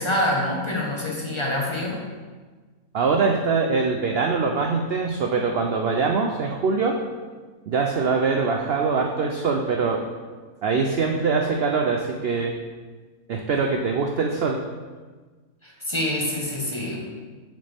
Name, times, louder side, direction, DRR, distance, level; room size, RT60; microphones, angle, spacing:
voice 1, 0.0-2.0 15.6-17.0, left 1 dB, 20° left, -3 dB, 1.3 m, -26 dB
voice 2, 2.9-7.0 7.7-10.0 10.6-12.5 13.3-14.6, right 4 dB, 60° right, 2 dB, 0.7 m, -23 dB
8.2 x 6.4 x 3.4 m, 1.4 s
omnidirectional pair, 1.5 m